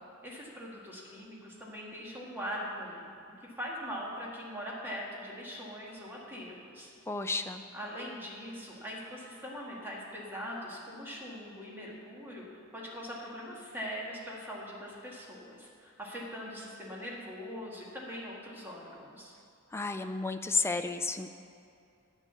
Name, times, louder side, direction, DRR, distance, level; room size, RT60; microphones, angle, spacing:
voice 1, 0.2-3.1 3.4-6.9 7.7-19.3, equal, 10° right, -4 dB, 1.8 m, -41 dB
voice 2, 7.1-7.6 19.7-21.3, left 4 dB, 10° left, 8 dB, 0.4 m, -32 dB
9.0 x 7.4 x 6.8 m, 2.6 s
head